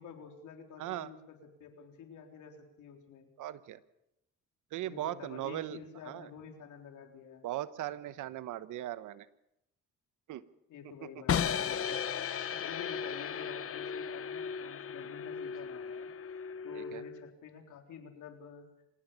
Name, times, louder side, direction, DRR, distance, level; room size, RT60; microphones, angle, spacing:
voice 1, 0.0-3.3 4.8-7.5 10.7-12.1 12.5-16.1 16.6-18.7, left 6 dB, 80° left, 4 dB, 3.9 m, -49 dB
voice 2, 0.8-1.1 3.4-3.8 4.7-5.8 6.0-6.3 7.4-9.3 10.3-10.4 11.0-11.1 16.7-17.0, right 13 dB, 85° right, 15 dB, 1.1 m, -38 dB
sound 1, 11.3-17.3, left 7 dB, 50° left, 1.0 m, -36 dB
26.0 x 16.0 x 7.0 m, 0.83 s
cardioid pair, 90°, 30 cm